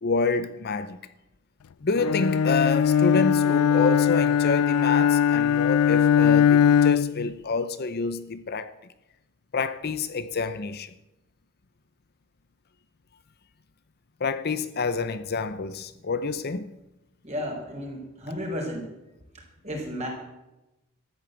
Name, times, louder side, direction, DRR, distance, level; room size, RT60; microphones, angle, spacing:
voice 1, 0.0-1.0 1.8-8.7 9.5-10.9 14.2-16.7, left 4 dB, 45° left, 0.6 m, -28 dB
Bowed string instrument, 2.0-7.3, left 8 dB, 90° left, 0.4 m, -20 dB
voice 2, 17.2-18.9 19.3-20.1, equal, 30° right, 4.7 m, -33 dB
14.0 x 9.1 x 8.0 m
head